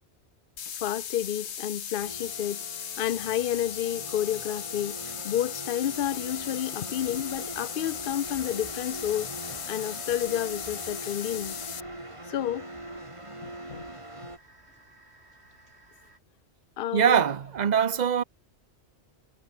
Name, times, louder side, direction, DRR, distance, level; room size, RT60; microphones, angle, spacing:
sound 1, 0.6-11.8, left 8 dB, 90° left, 1.3 m, -37 dB
voice 1, 0.8-2.6 3.0-9.3 9.7-11.6 12.3-12.7 13.4-13.8 16.8-17.2, left 11 dB, 55° left, 0.8 m, -30 dB
sound 2, 2.0-14.4, right 1 dB, 25° right, 3.9 m, -42 dB
sound 3, 8.2-16.2, right 2 dB, 75° right, 5.8 m, -57 dB
voice 2, 16.9-18.2, right 8 dB, 45° right, 0.9 m, -23 dB
omnidirectional pair, 1.1 m